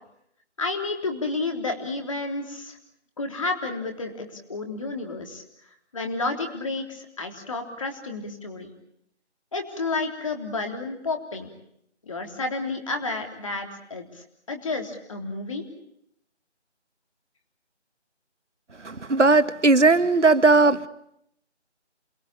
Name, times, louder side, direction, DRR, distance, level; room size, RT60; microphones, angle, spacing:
voice 1, 0.6-2.8 3.2-5.4 5.9-8.7 9.5-11.5 12.0-15.7, left 3 dB, 30° left, 4 dB, 3.5 m, -31 dB
voice 2, 18.8-20.9, right 3 dB, 80° right, 14 dB, 1.6 m, -18 dB
29.0 x 22.0 x 8.7 m, 0.74 s
figure-of-eight pair, 170°, 35 cm